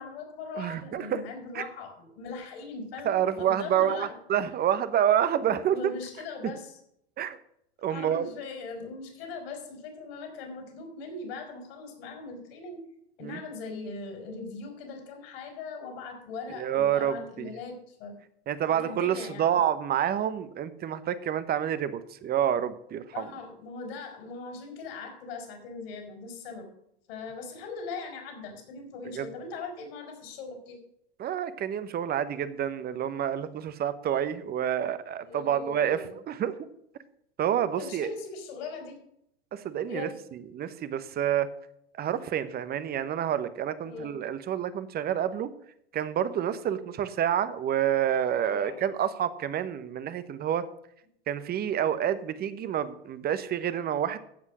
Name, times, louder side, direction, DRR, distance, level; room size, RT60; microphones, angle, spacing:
voice 1, 0.0-4.1 5.3-6.7 7.9-12.8 13.2-18.1 18.8-19.6 23.1-26.7 27.1-30.8 35.2-36.2 37.8-39.0 39.9-40.2 43.8-44.2 48.4-48.8, left 4 dB, 65° left, 4 dB, 4.3 m, -40 dB
voice 2, 0.6-1.2 1.5-1.6 3.0-5.8 7.2-7.4 7.8-8.3 13.2-13.4 16.5-17.5 18.5-23.3 29.1-29.3 31.2-36.5 37.4-38.1 39.5-41.5 42.0-45.5 45.9-50.7 51.3-54.2, right 10 dB, 30° right, 14 dB, 1.0 m, -28 dB
14.5 x 5.6 x 6.1 m, 0.73 s
hypercardioid pair, 100°, 32 cm